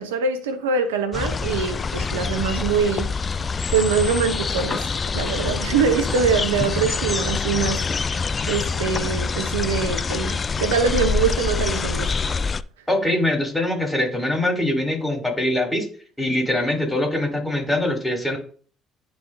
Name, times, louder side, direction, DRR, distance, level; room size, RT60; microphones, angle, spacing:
voice 1, 0.0-3.1 3.7-7.9 8.5-12.1, right 5 dB, 85° right, 0.8 m, -23 dB
sound 1, 1.1-12.6, left 5 dB, 35° left, 0.4 m, -25 dB
voice 2, 12.9-15.9 16.2-18.4, left 1 dB, 10° left, 3.7 m, -23 dB
11.0 x 4.9 x 2.7 m
hypercardioid pair, 55°, 0 cm